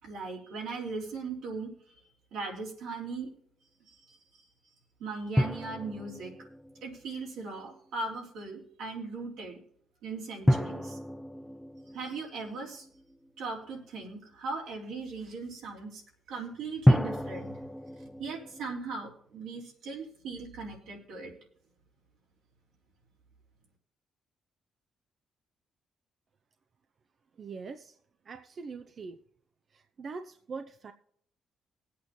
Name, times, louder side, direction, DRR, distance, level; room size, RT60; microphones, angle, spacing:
voice 1, 0.0-1.7 2.3-3.3 3.9-4.2 5.0-6.3 6.8-9.6 10.0-11.0 11.9-12.9 13.4-16.0 16.3-17.6 18.2-21.3, right 4 dB, 85° right, -2 dB, 3.8 m, -38 dB
sound 1, 5.4-7.6 10.5-13.4 16.9-18.7, equal, 5° left, 0.5 m, -30 dB
voice 2, 27.4-27.9 28.3-29.2 29.7-30.9, right 4 dB, 50° right, 8 dB, 0.7 m, -42 dB
21.5 x 8.5 x 2.9 m, 0.65 s
cardioid pair, 90°, 0 cm